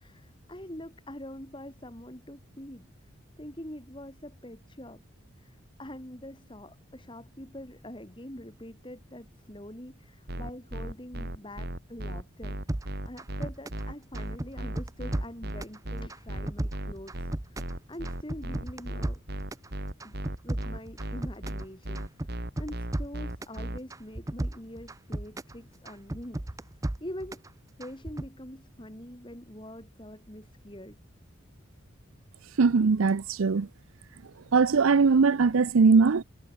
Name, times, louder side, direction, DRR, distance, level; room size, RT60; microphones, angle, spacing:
voice 1, 0.0-2.9 3.4-5.0 5.4-12.8 13.0-19.2 20.0-20.1 20.4-26.4 27.0-27.4 27.8-31.0, left 1 dB, 25° left, 3.1 m, -44 dB
sound 1, 10.3-23.8, right 1 dB, 50° right, 3.1 m, -36 dB
sound 2, 12.7-13.9 14.1-15.8 16.1-17.8 18.0-19.7 20.0-21.7 22.0-23.6 23.9-25.6 25.9-27.5 27.8-28.3, right 1 dB, 15° right, 0.6 m, -34 dB
voice 2, 32.6-33.7 34.5-36.2, right 4 dB, 80° right, 0.6 m, -21 dB
head